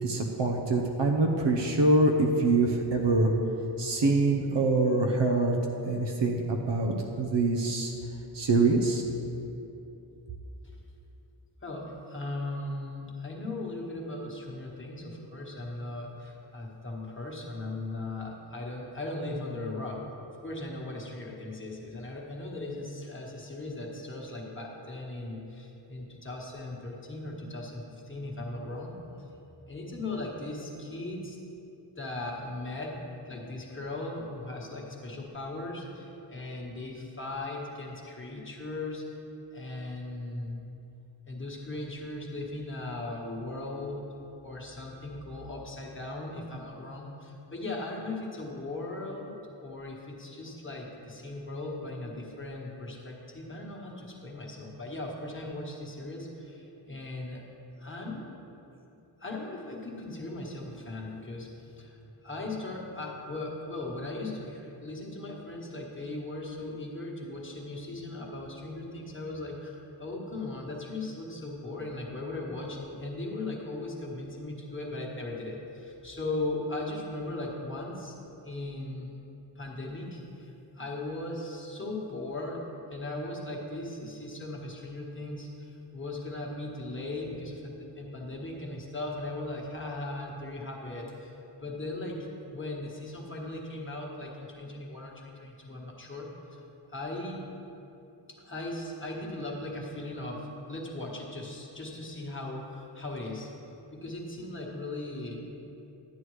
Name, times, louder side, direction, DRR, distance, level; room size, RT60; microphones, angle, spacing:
voice 1, 0.0-3.3 3.8-5.6 5.8-7.9 8.3-9.0, right 2 dB, 60° right, 2 dB, 0.8 m, -25 dB
voice 2, 11.6-20.0 20.4-29.3 29.7-31.4 32.0-33.0 33.2-39.0 39.5-40.7 41.3-44.0 44.4-57.4 57.8-58.3 59.2-78.1 78.4-79.2 79.5-96.6 96.9-97.4 98.3-103.5 103.9-105.5, left 2 dB, 25° left, -2 dB, 1.3 m, -38 dB
11.0 x 9.7 x 3.2 m, 2.9 s
wide cardioid pair, 145°, 48 cm